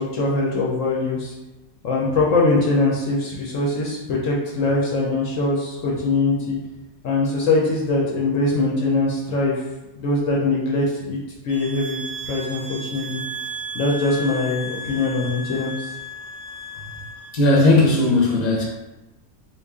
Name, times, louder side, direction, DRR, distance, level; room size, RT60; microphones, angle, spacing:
voice 1, 0.0-1.3 1.8-6.6 7.0-9.6 9.9-11.2 11.4-13.2 13.7-15.9, left 2 dB, 70° left, -4 dB, 0.9 m, -22 dB
sound 1, 11.5-17.3, right 1 dB, 70° right, 0.9 m, -34 dB
voice 2, 17.3-18.6, left 2 dB, 35° left, -3 dB, 0.7 m, -16 dB
3.1 x 2.5 x 3.5 m, 1.0 s
omnidirectional pair, 1.5 m